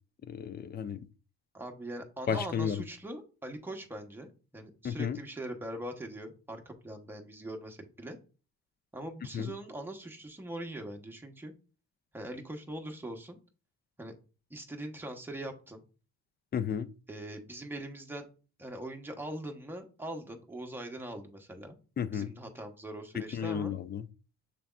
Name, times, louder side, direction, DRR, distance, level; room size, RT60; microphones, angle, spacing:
voice 1, 0.3-1.1 2.3-2.8 4.8-5.2 9.3-9.5 16.5-16.9 22.0-22.3 23.1-24.1, left 7 dB, 35° left, 0.4 m, -33 dB
voice 2, 1.5-8.2 8.9-11.5 12.1-13.4 14.0-14.2 14.5-15.8 17.1-18.3 18.6-21.8 22.1-23.8, right 1 dB, 5° right, 0.9 m, -42 dB
6.6 x 3.3 x 2.3 m
cardioid pair, 90°, 30 cm